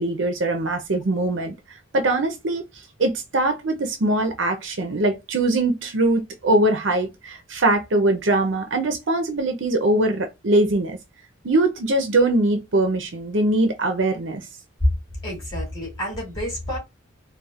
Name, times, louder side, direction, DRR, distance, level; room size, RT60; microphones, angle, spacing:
voice 1, 0.0-1.5 1.9-2.6 3.0-11.0 11.4-14.4, right 2 dB, 60° right, 0.6 m, -22 dB
voice 2, 15.2-16.8, equal, 20° left, 2.2 m, -30 dB
4.1 x 2.3 x 2.4 m
head